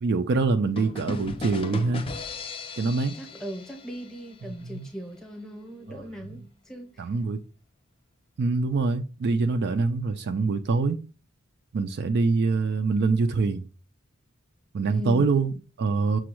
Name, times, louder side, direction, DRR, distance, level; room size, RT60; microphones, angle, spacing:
voice 1, 0.0-2.0 2.8-3.1 4.6-4.9 5.9-6.0 7.0-7.4 8.4-11.0 11.7-13.7 14.7-16.2, right 4 dB, 55° right, 0.4 m, -24 dB
sound 1, 0.8-4.5, left 3 dB, 25° left, 0.4 m, -37 dB
voice 2, 3.1-7.1 14.9-15.3, equal, 5° left, 0.8 m, -38 dB
6.0 x 2.3 x 3.0 m
head